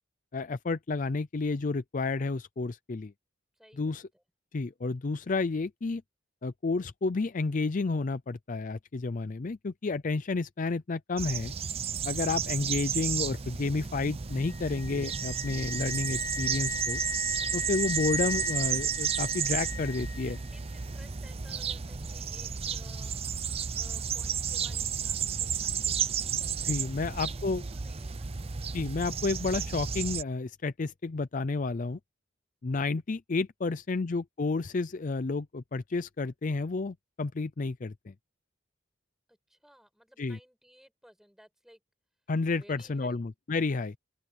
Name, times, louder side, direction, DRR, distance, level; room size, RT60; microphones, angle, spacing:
voice 1, 0.3-3.1 3.8-4.0 4.5-6.0 6.4-11.5 12.0-17.0 17.5-20.4 26.6-27.6 28.7-32.0 32.6-38.1 40.2-40.4 42.3-44.0, left 3 dB, 40° left, 0.5 m, -31 dB
voice 2, 3.6-4.2 19.9-23.2 23.7-28.4 33.6-34.0 39.3-41.8 42.5-43.2, equal, ahead, 7.4 m, -58 dB
sound 1, 11.2-30.2, right 7 dB, 30° right, 0.6 m, -33 dB
Wind instrument woodwind instrument, 14.4-20.4, left 2 dB, 20° left, 1.4 m, -37 dB
open air
head